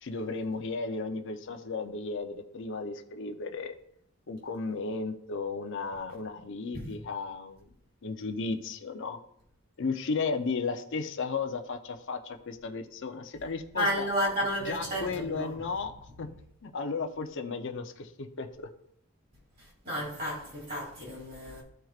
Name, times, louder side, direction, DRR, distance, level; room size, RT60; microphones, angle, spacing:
voice 1, 0.0-3.8 4.3-7.6 8.0-9.2 9.8-14.1 14.6-15.9 16.2-16.3 16.6-18.7, left 4 dB, 60° left, 0.6 m, -34 dB
voice 2, 13.7-15.5 19.8-21.6, equal, 40° right, 3.1 m, -32 dB
13.0 x 4.5 x 2.4 m
head